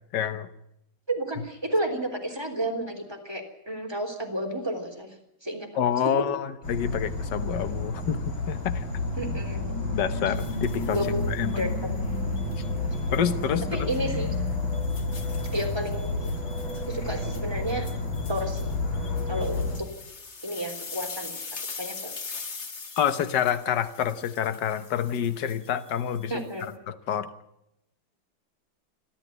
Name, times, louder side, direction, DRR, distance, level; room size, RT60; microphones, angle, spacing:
voice 1, 0.1-0.5 5.8-8.8 9.9-11.0 11.3-11.7 13.1-13.9 23.0-26.3 26.9-27.3, left 9 dB, 60° left, 11 dB, 1.7 m, -27 dB
voice 2, 1.1-5.1 5.4-5.7 6.0-6.3 9.2-9.8 10.9-11.9 13.7-14.3 15.5-16.3 16.9-17.9 18.3-18.7 19.3-19.9 20.4-22.1 26.3-26.7, right 1 dB, 10° right, 2 dB, 3.6 m, -31 dB
Insect / Frog, 6.6-19.8, left 2 dB, 80° left, 4.3 m, -30 dB
sound 1, 10.3-11.6 12.4-13.3 13.7-14.0 14.5-26.7, left 4 dB, 35° left, 1.6 m, -43 dB
29.0 x 12.5 x 8.1 m, 0.81 s
omnidirectional pair, 2.2 m